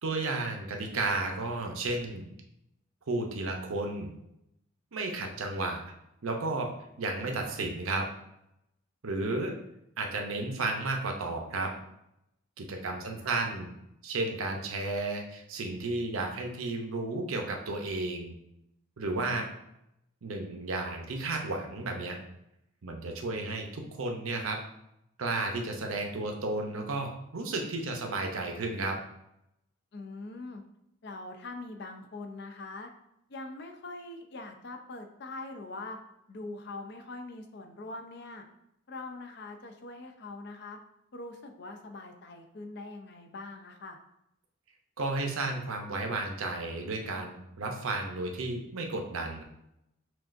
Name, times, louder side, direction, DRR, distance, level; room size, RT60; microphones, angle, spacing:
voice 1, 0.0-2.3 3.1-4.1 4.9-5.8 6.2-6.7 7.0-8.1 9.0-9.5 10.0-11.7 12.6-13.7 14.0-18.3 19.0-19.4 20.2-22.2 22.8-24.6 25.2-29.0 45.0-49.4, right 2 dB, 85° right, 3 dB, 0.7 m, -33 dB
voice 2, 12.7-13.6 19.3-19.5 29.9-30.6 31.0-32.9 33.3-36.0 36.3-38.4 38.9-40.8 41.1-44.0, left 2 dB, 50° left, 5 dB, 0.5 m, -43 dB
6.1 x 2.4 x 2.5 m, 0.82 s
head